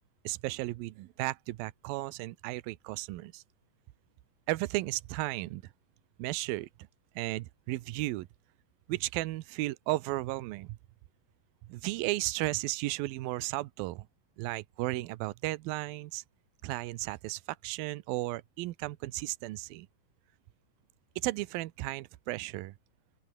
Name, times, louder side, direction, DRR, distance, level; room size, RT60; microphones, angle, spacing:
voice 1, 0.2-3.4 4.5-5.7 6.2-6.7 7.2-8.3 8.9-10.8 11.6-14.1 14.4-16.2 16.6-19.9 21.2-22.7, right 19 dB, 80° right, 2.1 m, -34 dB
open air
omnidirectional pair, 5.2 m